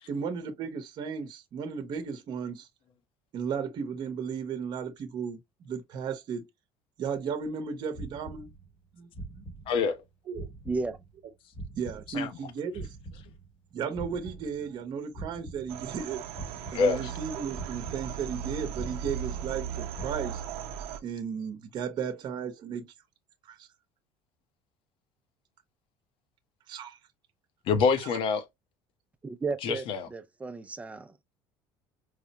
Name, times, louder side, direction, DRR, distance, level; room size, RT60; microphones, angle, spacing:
voice 1, 0.1-2.7 3.3-6.4 7.0-8.5 8.9-9.4 10.3-10.5 11.8-13.0 13.7-16.2 16.7-20.4 21.0-22.9 23.4-23.7 26.7-27.0, right 6 dB, 45° right, 0.9 m, -35 dB
sound 1, 7.9-8.9 9.1-10.1 10.3-12.5 12.7-14.9 15.1-16.1 16.3-17.3 17.5-18.5 18.7-19.7 19.9-20.2, right 2 dB, 10° left, 0.9 m, -44 dB
voice 2, 9.7-10.0 12.1-12.3 16.7-17.1 27.7-28.4 29.6-30.1, left 5 dB, 55° left, 0.8 m, -26 dB
voice 3, 10.7-11.0 29.2-29.9 30.1-31.1, right 4 dB, 15° right, 0.4 m, -33 dB
sound 2, 15.7-21.0, right 8 dB, 70° right, 0.6 m, -37 dB
4.8 x 2.1 x 2.8 m
cardioid pair, 140°, 10 cm